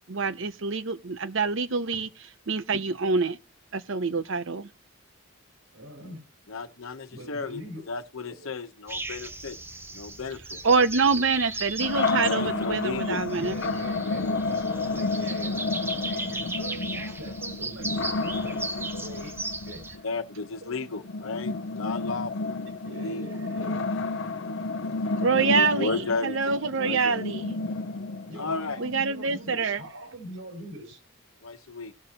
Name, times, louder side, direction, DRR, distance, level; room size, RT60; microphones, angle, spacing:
voice 1, 0.1-2.1 2.5-3.4 3.7-4.7 10.6-13.6 25.2-27.5 28.8-29.8, right 4 dB, 65° right, 0.7 m, -26 dB
voice 2, 5.7-6.2 7.1-7.9 8.2-8.5 13.3-19.4 19.6-20.2 20.6-20.7 22.6-23.9 28.3-31.0, right 1 dB, 85° right, 4.5 m, -42 dB
voice 3, 6.5-9.6 9.9-10.6 12.2-13.2 14.1-14.2 18.2-18.3 20.0-23.4 24.4-25.0 25.3-27.3 28.4-28.8 31.4-31.9, left 4 dB, 80° left, 1.1 m, -34 dB
sound 1, 8.9-20.0, right 2 dB, 10° right, 0.9 m, -37 dB
sound 2, 11.8-29.6, left 3 dB, 65° left, 0.6 m, -31 dB
18.0 x 6.5 x 2.8 m
head